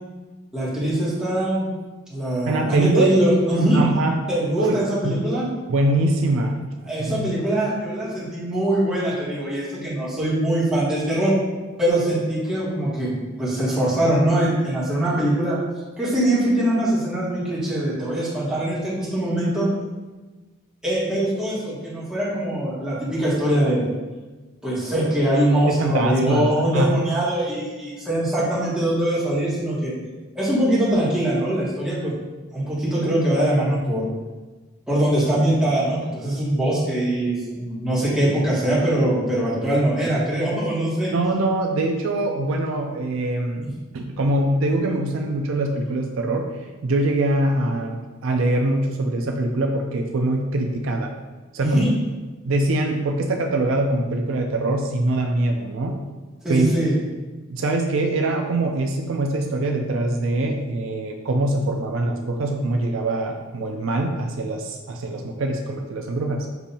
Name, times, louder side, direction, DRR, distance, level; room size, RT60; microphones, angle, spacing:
voice 1, 0.5-1.7 2.1-3.8 4.3-5.5 6.8-11.3 11.8-15.6 16.0-19.7 20.8-23.9 24.6-29.9 30.3-32.1 32.5-34.1 34.9-41.1 51.6-51.9 56.4-56.9, right 1 dB, 5° right, -10 dB, 1.3 m, -22 dB
voice 2, 2.5-3.1 3.7-4.2 4.6-5.2 5.7-6.6 7.0-7.3 25.7-26.9 41.1-46.5 46.8-51.1 51.5-51.8 52.4-55.9 56.5-56.7 57.5-66.5, right 2 dB, 70° right, 2 dB, 0.4 m, -23 dB
6.8 x 2.6 x 2.8 m, 1.2 s
head